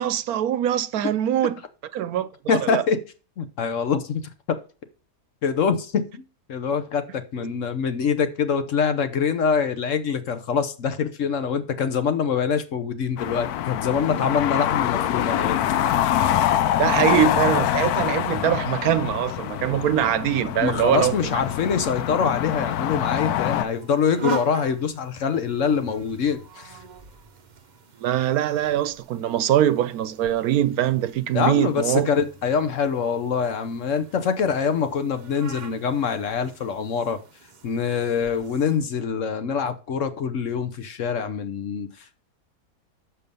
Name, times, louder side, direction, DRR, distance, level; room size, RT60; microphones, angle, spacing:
voice 1, 0.0-1.6 1.9-2.8 7.4-7.5 16.8-21.4 28.0-32.1, right 11 dB, 80° right, 1.1 m, -23 dB
voice 2, 2.5-3.0 3.4-4.6 5.4-6.2 6.5-15.6 20.6-26.8 31.3-37.2 37.6-42.2, left 6 dB, 60° left, 1.1 m, -24 dB
sound 1, 13.2-23.6, left 11 dB, 85° left, 1.1 m, -25 dB
sound 2, 20.8-38.8, right 3 dB, 40° right, 0.7 m, -42 dB
6.8 x 6.8 x 5.4 m
omnidirectional pair, 1.6 m